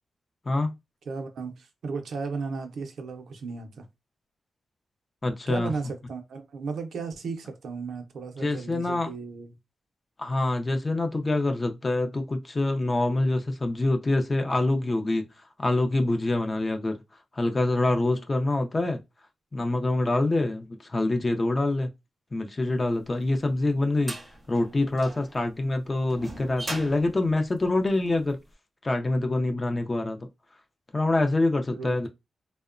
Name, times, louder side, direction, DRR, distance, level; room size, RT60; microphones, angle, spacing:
voice 1, 1.1-3.8 5.5-9.5 31.7-32.1, right 4 dB, 75° right, 0.5 m, -35 dB
voice 2, 5.2-5.7 8.4-9.1 10.2-15.3 15.6-17.0 17.3-19.0 19.5-21.9 22.3-24.1 24.5-28.4 28.8-30.3 30.9-32.1, left 2 dB, 30° left, 0.4 m, -25 dB
sound 1, 23.0-28.3, right 2 dB, 30° right, 0.5 m, -40 dB
2.7 x 2.1 x 2.4 m
wide cardioid pair, 110°, 0 cm